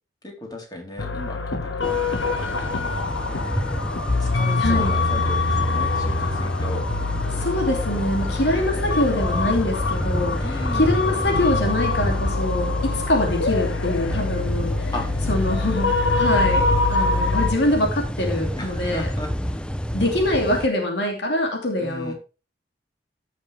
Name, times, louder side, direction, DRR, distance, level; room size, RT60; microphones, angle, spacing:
voice 1, 0.2-2.0 2.3-3.0 4.2-6.8 10.4-10.9 14.9-15.1 18.6-19.7 21.8-22.1, left 1 dB, 20° left, 1 dB, 3.7 m, -35 dB
sound 1, 1.0-17.5, left 3 dB, 85° left, 1.4 m, -24 dB
sound 2, 1.8-20.7, equal, 5° left, 0.6 m, -29 dB
voice 2, 4.6-4.9 7.3-14.9 15.3-19.1 19.9-22.1, left 1 dB, 65° left, 2 dB, 2.8 m, -24 dB
15.5 x 6.7 x 3.4 m, 0.32 s
head